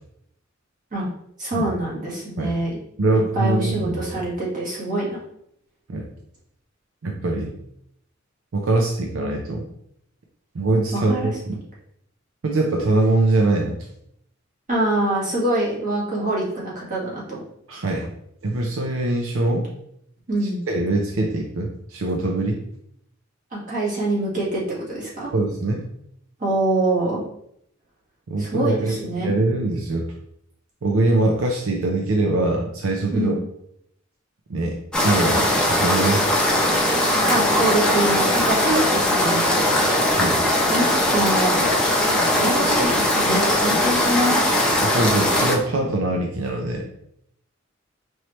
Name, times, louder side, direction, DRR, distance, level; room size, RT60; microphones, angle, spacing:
voice 1, 1.4-2.8 3.3-5.2 10.9-11.3 14.7-17.4 20.3-20.6 23.5-24.6 24.9-25.3 26.4-27.2 28.4-29.3 33.1-33.3 37.3-41.7 42.3-44.6, right 1 dB, 40° right, -5 dB, 1.6 m, -25 dB
voice 2, 3.0-4.2 5.9-6.1 7.0-7.5 8.5-9.6 10.5-11.6 12.4-13.8 17.7-18.1 18.4-19.7 20.7-22.6 25.3-25.9 28.3-30.1 30.8-33.4 34.5-34.8 35.0-36.2 40.2-40.4 44.8-46.9, right 2 dB, 75° right, 1 dB, 0.5 m, -23 dB
sound 1, 34.9-45.6, left 1 dB, 5° left, 0.6 m, -20 dB
4.4 x 3.1 x 3.0 m, 0.73 s
head